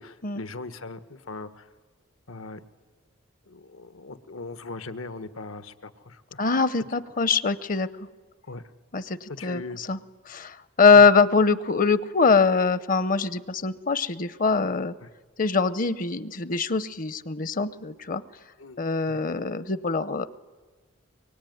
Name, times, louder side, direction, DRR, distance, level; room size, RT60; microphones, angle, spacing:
voice 1, 0.0-1.7 2.3-2.6 3.5-6.4 8.5-8.6 9.3-9.8 10.9-11.1 15.0-15.1 18.6-18.8 19.1-19.2, left 3 dB, 80° left, 12 dB, 1.3 m, -40 dB
voice 2, 6.4-7.9 8.9-10.0 10.3-14.9 15.4-18.2 18.8-20.3, left 4 dB, 40° left, 16 dB, 0.7 m, -22 dB
24.0 x 23.5 x 9.3 m, 1.3 s
head